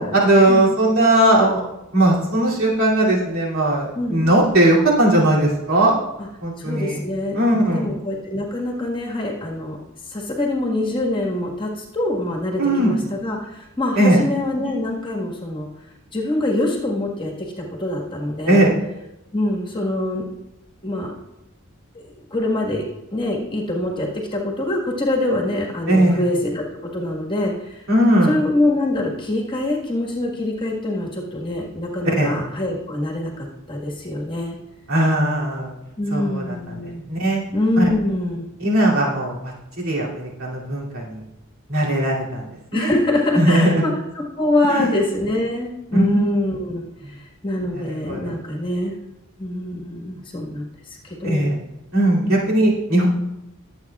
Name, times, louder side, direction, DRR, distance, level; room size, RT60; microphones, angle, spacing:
voice 1, 0.0-1.6 1.9-6.0 6.4-7.0 7.3-7.9 12.6-12.9 14.0-14.2 18.5-18.8 25.9-26.3 27.9-28.3 32.2-32.3 34.9-35.7 36.1-37.4 37.8-37.9 38.6-41.2 41.7-42.9 43.4-43.8 44.7-44.9 45.9-46.2 47.7-48.3 51.2-51.6 51.9-53.1, right 1 dB, 70° right, -4 dB, 2.7 m, -18 dB
voice 2, 6.6-7.4 7.7-9.8 10.1-15.7 16.1-18.7 19.3-20.3 20.8-21.1 21.9-27.8 28.2-34.6 36.0-37.0 37.5-38.5 42.7-49.0 49.4-51.5 52.2-52.5, left 1 dB, 20° left, -2 dB, 1.5 m, -24 dB
21.5 x 8.0 x 2.4 m, 0.93 s
head